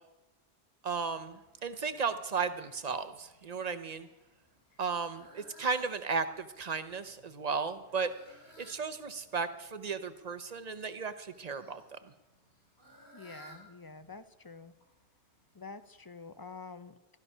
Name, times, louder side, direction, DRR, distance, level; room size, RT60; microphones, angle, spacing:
voice 1, 0.8-4.1 4.8-8.1 8.6-12.1, right 5 dB, 40° right, 10 dB, 0.8 m, -35 dB
Fowl, 1.1-16.5, right 1 dB, 65° left, 5.5 m, -61 dB
voice 2, 13.1-14.7 15.5-17.0, left 4 dB, 30° left, 11 dB, 0.5 m, -47 dB
14.0 x 12.5 x 5.5 m, 1.0 s
omnidirectional pair, 1.2 m